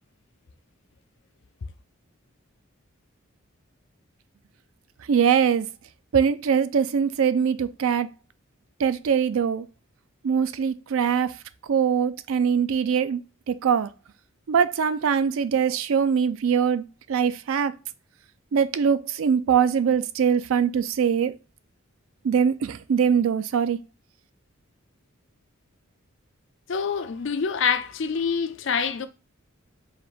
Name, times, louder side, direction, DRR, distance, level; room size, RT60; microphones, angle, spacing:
voice 1, 5.1-5.7 6.1-8.1 8.8-9.6 10.2-11.3 11.7-13.2 13.5-13.9 14.5-16.8 17.1-17.7 18.5-21.3 22.2-23.8, right 7 dB, 75° right, 0.4 m, -22 dB
voice 2, 26.7-29.1, left 6 dB, 60° left, 0.4 m, -26 dB
4.7 x 2.5 x 3.6 m
head